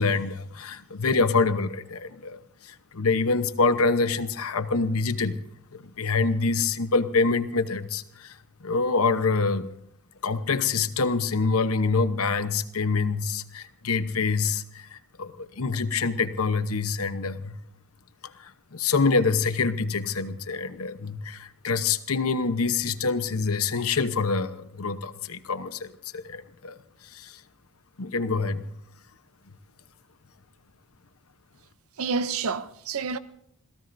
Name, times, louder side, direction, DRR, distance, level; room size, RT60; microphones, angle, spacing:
voice 1, 0.0-2.4 2.9-5.4 5.7-8.3 8.6-9.7 10.2-17.6 18.4-26.8 27.1-27.4 28.0-28.7, left 4 dB, 80° left, 1.0 m, -26 dB
voice 2, 32.0-33.2, right 5 dB, 75° right, 0.7 m, -28 dB
28.0 x 16.5 x 2.7 m
head